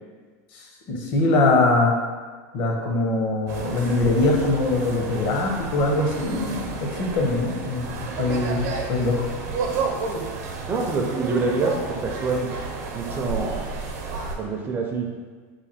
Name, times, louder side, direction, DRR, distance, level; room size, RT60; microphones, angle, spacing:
voice 1, 0.5-1.9 2.5-9.2, left 2 dB, 55° left, 0 dB, 0.7 m, -22 dB
sound 1, 3.5-14.3, right 4 dB, 75° right, 0.7 m, -31 dB
voice 2, 10.7-12.5 12.9-13.6 14.4-15.1, right 3 dB, 25° right, 1 dB, 0.4 m, -26 dB
3.2 x 2.3 x 4.1 m, 1.5 s
supercardioid pair, 140°, 8 cm